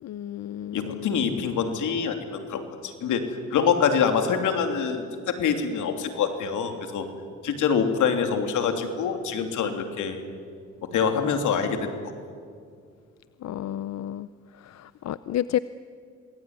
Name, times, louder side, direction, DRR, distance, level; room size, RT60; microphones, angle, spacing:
voice 1, 0.0-1.4 13.4-14.3 14.6-15.6, left 12 dB, 60° left, 16 dB, 0.6 m, -31 dB
voice 2, 0.7-3.2 3.5-7.1 7.4-10.2 10.9-12.0, left 6 dB, 80° left, 6 dB, 3.2 m, -25 dB
26.5 x 21.0 x 9.6 m, 2.2 s
cardioid pair, 90°, 30 cm